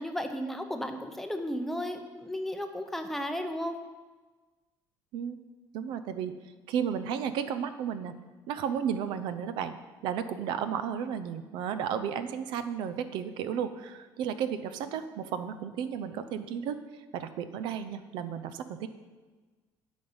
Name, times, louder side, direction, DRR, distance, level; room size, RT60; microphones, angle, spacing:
voice 1, 0.0-3.8, equal, 5° left, 6 dB, 0.7 m, -34 dB
voice 2, 5.7-6.4 6.7-8.2 8.5-9.8 10.0-16.8 17.1-18.9, right 8 dB, 70° right, 11 dB, 0.7 m, -33 dB
9.3 x 5.3 x 7.9 m, 1.3 s
cardioid pair, 160°, 8 cm